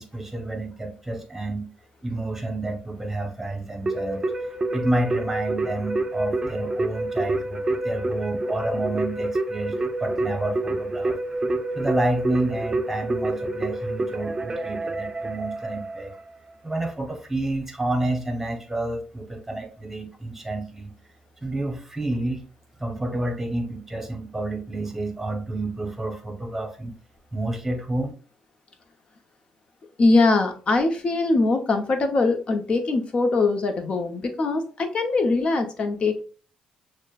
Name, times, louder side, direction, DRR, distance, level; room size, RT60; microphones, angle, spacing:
voice 1, 0.0-1.7 2.0-4.2 4.7-11.2 11.7-16.2 16.6-20.9 21.4-22.4 22.8-26.9 27.3-28.1, right 2 dB, 10° right, 5 dB, 1.0 m, -29 dB
Keyboard (musical), 3.9-16.3, right 2 dB, 25° right, 0.5 m, -28 dB
voice 2, 30.0-36.2, left 3 dB, 45° left, 6 dB, 0.9 m, -22 dB
6.2 x 2.2 x 2.4 m, 0.39 s
cardioid pair, 85°, 2 cm